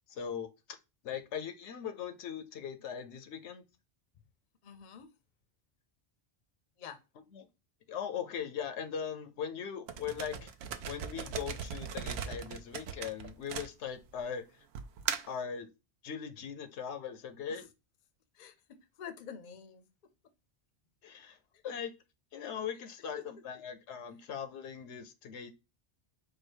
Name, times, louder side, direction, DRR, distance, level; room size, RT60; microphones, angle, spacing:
voice 1, 0.1-0.8 1.0-3.6 7.3-7.5 7.9-10.5 10.9-14.6 15.3-15.7 16.0-17.7 21.0-21.4 21.6-21.9 22.3-25.5, left 7 dB, 80° left, 0.9 m, -40 dB
voice 2, 4.6-5.1 6.8-7.0 17.5-17.6 18.3-19.9 21.5-21.6 23.2-23.3, left 8 dB, 50° left, 0.7 m, -47 dB
sound 1, 9.9-14.2 14.7-15.4, right 7 dB, 70° right, 0.8 m, -38 dB
4.7 x 2.3 x 4.4 m
omnidirectional pair, 1.2 m